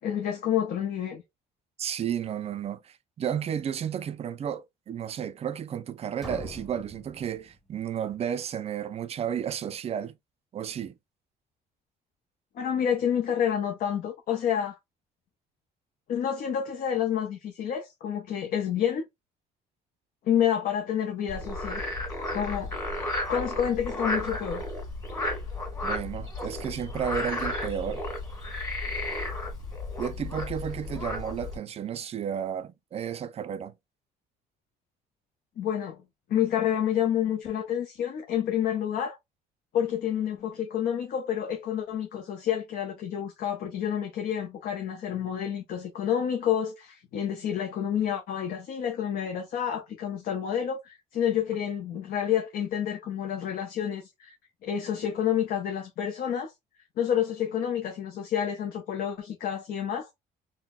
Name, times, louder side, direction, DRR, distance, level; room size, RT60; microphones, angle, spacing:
voice 1, 0.0-1.2 12.6-14.8 16.1-19.0 20.2-21.8 22.3-22.7 23.3-24.6 35.6-36.0 36.3-39.2 39.7-54.3 54.6-56.5 57.0-60.1, left 9 dB, 60° left, 0.6 m, -29 dB
voice 2, 1.8-10.2 10.5-11.0 25.8-28.0 30.0-33.7, right 8 dB, 35° right, 0.4 m, -32 dB
sound 1, 6.2-8.1, equal, ahead, 0.8 m, -43 dB
Frog, 21.3-31.6, left 2 dB, 20° left, 1.8 m, -33 dB
3.8 x 2.1 x 2.3 m
cardioid pair, 110°, 17 cm